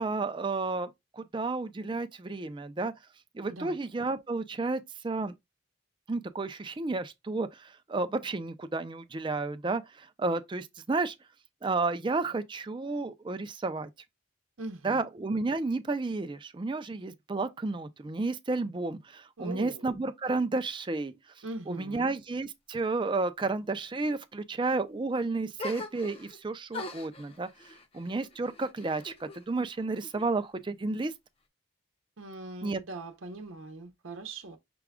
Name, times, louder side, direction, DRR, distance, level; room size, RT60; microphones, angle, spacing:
voice 1, 0.0-2.9 3.3-5.3 6.1-11.1 11.6-13.9 14.8-21.1 21.7-27.5 27.9-31.1 32.6-32.8, right 3 dB, 25° right, 0.4 m, -32 dB
voice 2, 14.6-15.0 19.4-19.8 21.4-22.1 32.2-34.6, right 2 dB, 80° right, 0.8 m, -41 dB
sound 1, 25.6-26.4 26.7-29.5 29.8-30.6, left 2 dB, 30° left, 0.5 m, -43 dB
6.0 x 2.3 x 3.5 m
head